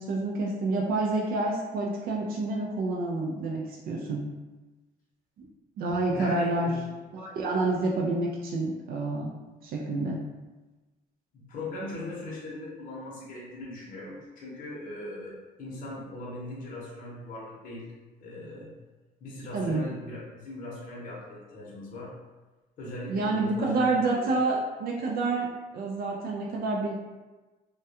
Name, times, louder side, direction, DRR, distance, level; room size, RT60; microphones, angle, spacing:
voice 1, 0.0-4.2 5.8-6.7 7.1-9.3 9.6-10.2 19.5-19.8 23.1-25.5 25.7-26.9, right 2 dB, 60° right, -1 dB, 0.4 m, -28 dB
voice 2, 6.1-6.8 11.3-17.9 18.2-18.7 19.2-22.1 22.8-24.6, left 1 dB, 55° left, -5 dB, 0.7 m, -39 dB
2.2 x 2.2 x 2.8 m, 1.2 s
cardioid pair, 110°, 17 cm